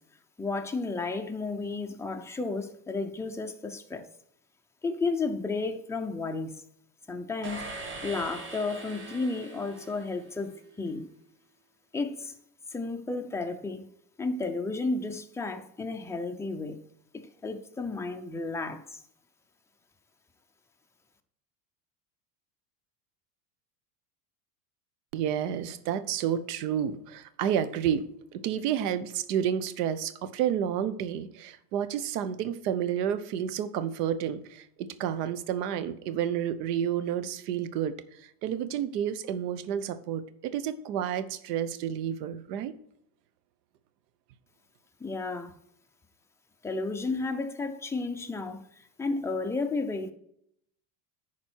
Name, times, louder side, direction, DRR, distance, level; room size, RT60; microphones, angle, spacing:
voice 1, 0.4-4.1 4.8-6.6 7.1-7.7 8.0-11.1 11.9-12.3 12.7-13.9 14.2-16.8 17.1-19.0 45.0-45.6 46.6-50.1, left 3 dB, 5° left, 0.6 m, -32 dB
sound 1, 7.4-10.6, right 3 dB, 25° right, 1.6 m, -41 dB
voice 2, 25.1-28.1 28.3-42.7, right 9 dB, 75° right, 1.0 m, -30 dB
10.5 x 4.5 x 4.4 m
supercardioid pair, 115°, 48 cm